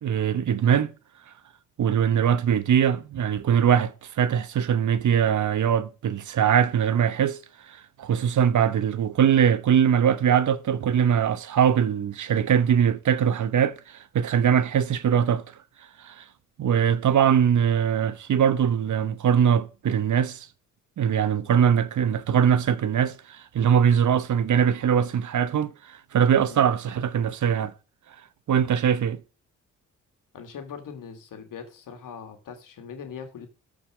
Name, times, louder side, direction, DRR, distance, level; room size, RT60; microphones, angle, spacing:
voice 1, 0.0-0.9 1.8-15.4 16.0-16.2 16.6-20.5 21.0-27.7 28.5-29.2, right 8 dB, 60° right, 1.1 m, -22 dB
voice 2, 30.3-33.5, left 6 dB, 70° left, 2.5 m, -41 dB
13.5 x 5.2 x 5.1 m
supercardioid pair, 55°, 33 cm